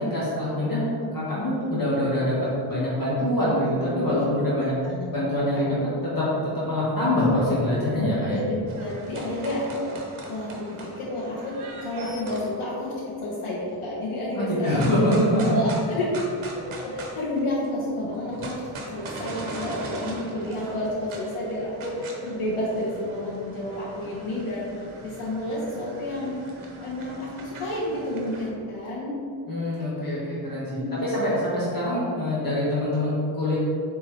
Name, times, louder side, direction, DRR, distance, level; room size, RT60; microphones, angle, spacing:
voice 1, 0.1-2.3 2.7-4.7 5.1-5.8 6.0-8.4 14.3-15.4 29.5-33.6, left 1 dB, 45° left, -8 dB, 1.4 m, -24 dB
voice 2, 8.3-14.9 15.4-16.1 16.5-26.4 26.8-29.2 30.7-31.2, left 1 dB, 85° left, -6 dB, 1.3 m, -30 dB
sound 1, 8.7-12.6 14.7-17.7 18.0-28.5, right 2 dB, 80° right, 1.1 m, -40 dB
8.2 x 3.6 x 3.3 m, 2.5 s
wide cardioid pair, 135°, 48 cm